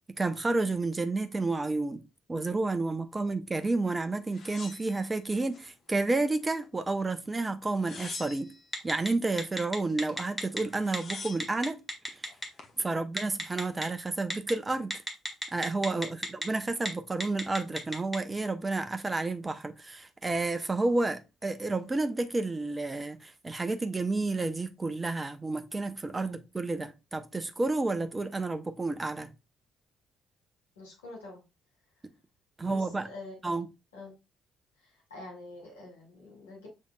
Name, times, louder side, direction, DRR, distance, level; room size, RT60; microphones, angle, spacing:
voice 1, 0.2-2.0 2.3-8.5 8.8-11.8 12.1-12.2 12.8-15.0 15.5-29.3 32.0-32.1 32.6-33.1 33.4-33.7, right 3 dB, 20° right, 0.6 m, -30 dB
sound 1, 4.3-5.7 6.1-6.9 7.6-8.7 10.3-10.4 10.6-11.6 12.3-12.8, left 4 dB, 45° left, 1.0 m, -45 dB
Telephone, 8.7-9.1 9.4-10.6 10.9-11.1 11.4-12.5 13.2-13.8 14.3-14.5 14.9-16.5 16.8-16.9 17.2-18.2, equal, 5° left, 1.6 m, -32 dB
voice 2, 30.8-31.4 32.7-33.4 33.9-34.1 34.8-36.7, left 2 dB, 80° left, 2.1 m, -46 dB
6.4 x 3.5 x 2.2 m
figure-of-eight pair, 45°, 0 cm